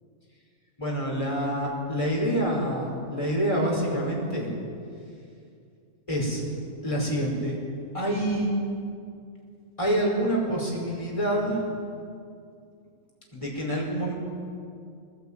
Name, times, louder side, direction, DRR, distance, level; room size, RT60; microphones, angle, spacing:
voice 1, 0.8-4.5 6.1-6.4 6.8-7.6 7.9-8.5 9.8-11.7 13.3-14.1, right 1 dB, 25° left, -2 dB, 5.4 m, -27 dB
21.0 x 16.0 x 8.9 m, 2.4 s
omnidirectional pair, 1.4 m